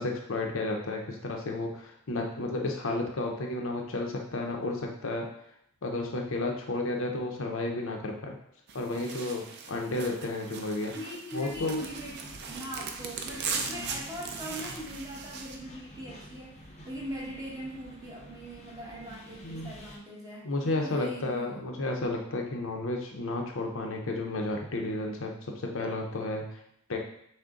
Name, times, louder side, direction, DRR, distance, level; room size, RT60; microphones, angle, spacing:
voice 1, 0.0-5.2 5.8-8.4 8.7-10.9 11.3-11.8 13.6-13.9 19.4-19.7 20.4-26.4 26.9-27.0, left 2 dB, 65° left, 1 dB, 0.7 m, -32 dB
sound 1, 8.7-15.6, right 5 dB, 50° right, 0.5 m, -39 dB
voice 2, 10.9-21.8, right 1 dB, 15° right, -5 dB, 1.2 m, -41 dB
sound 2, 11.5-20.0, equal, 30° left, 0.7 m, -49 dB
6.1 x 2.2 x 3.8 m, 0.72 s
head